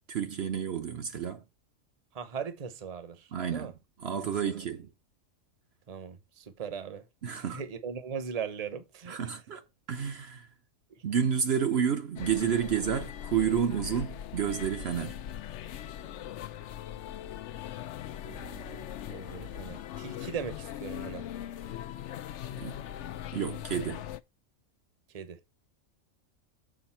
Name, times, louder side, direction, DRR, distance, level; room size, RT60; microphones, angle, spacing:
voice 1, 0.1-1.4 3.3-3.7 4.0-4.9 7.2-7.6 9.1-9.6 9.9-10.5 11.0-15.1 22.6-22.8 23.3-24.1, right 8 dB, 60° right, 1.0 m, -30 dB
voice 2, 2.1-3.7 4.5-4.6 5.9-7.1 7.3-9.2 18.2-21.3 25.1-25.4, right 6 dB, 35° right, 0.9 m, -39 dB
sound 1, 12.2-24.2, left 11 dB, 70° left, 0.9 m, -40 dB
7.3 x 5.1 x 4.3 m
omnidirectional pair, 1.3 m